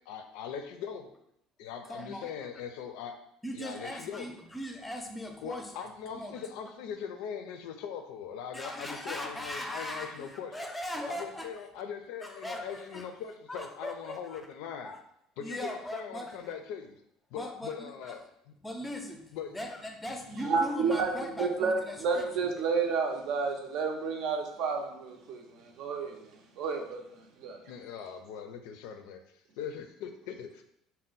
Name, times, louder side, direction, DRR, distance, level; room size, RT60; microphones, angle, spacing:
voice 1, 0.1-1.1 1.6-3.1 3.5-4.3 5.4-10.5 11.1-14.9 15.4-17.0 17.3-18.2 19.3-19.6 27.7-29.2 29.6-30.6, left 7 dB, 80° left, 6 dB, 0.4 m, -41 dB
voice 2, 1.9-2.3 3.4-5.9 6.1-6.4 8.5-11.5 12.2-13.1 13.5-14.5 14.8-15.0 15.4-16.5 17.3-18.2 18.6-22.5, left 1 dB, 10° left, 3 dB, 0.5 m, -39 dB
voice 3, 20.4-26.3 26.6-27.0 27.4-27.6, right 4 dB, 65° right, 3 dB, 0.5 m, -31 dB
2.7 x 2.0 x 3.9 m, 0.74 s
supercardioid pair, 115°, 0 cm